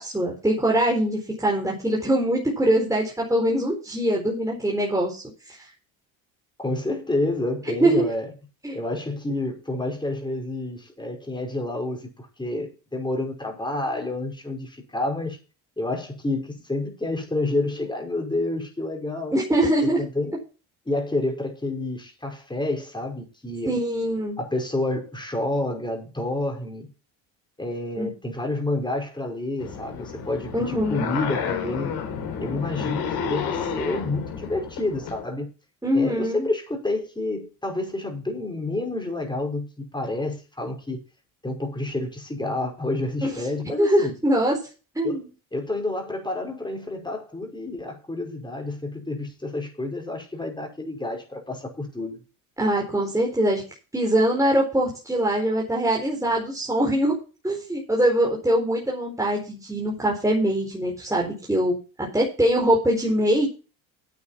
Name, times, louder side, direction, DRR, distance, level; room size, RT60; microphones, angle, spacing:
voice 1, 0.0-5.7 7.8-7.9 8.6-8.8 19.3-20.0 23.7-24.4 28.0-28.1 30.5-31.1 35.8-36.5 43.2-43.3 43.8-44.6 44.9-45.3 52.6-53.6 53.9-57.2 57.4-63.5, right 1 dB, 10° right, 4.3 m, -23 dB
voice 2, 6.6-8.3 8.7-15.4 15.8-19.3 20.0-20.3 20.9-23.7 24.4-26.9 27.6-31.9 32.4-35.5 35.9-41.0 41.4-44.1 45.0-45.2 45.5-52.2, left 2 dB, 10° left, 5.7 m, -29 dB
sound 1, 29.6-35.2, left 7 dB, 60° left, 3.7 m, -31 dB
9.7 x 8.7 x 6.0 m
hypercardioid pair, 75°, 42 cm